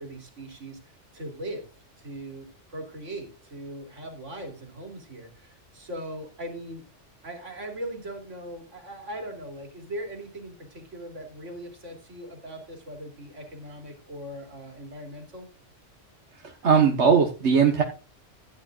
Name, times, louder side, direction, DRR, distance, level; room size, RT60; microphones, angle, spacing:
voice 1, 0.0-1.7 2.0-6.8 7.2-15.5, right 1 dB, 80° right, 3 dB, 3.4 m, -39 dB
voice 2, 16.6-17.8, right 6 dB, 65° right, 2 dB, 1.7 m, -19 dB
15.0 x 9.9 x 2.5 m, 0.35 s
omnidirectional pair, 1.2 m